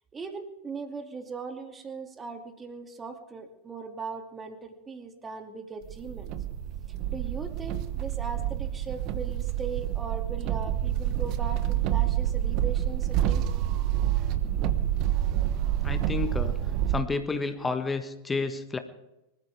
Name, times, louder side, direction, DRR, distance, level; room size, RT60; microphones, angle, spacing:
voice 1, 0.1-6.3 7.1-13.4, right 4 dB, 15° right, 5 dB, 2.5 m, -39 dB
sound 1, 5.9-17.0, right 11 dB, 40° right, 1.2 m, -28 dB
voice 2, 15.8-16.6 16.9-18.8, left 4 dB, 15° left, 9 dB, 1.4 m, -30 dB
24.5 x 14.5 x 3.5 m, 0.91 s
figure-of-eight pair, 90°, 0 cm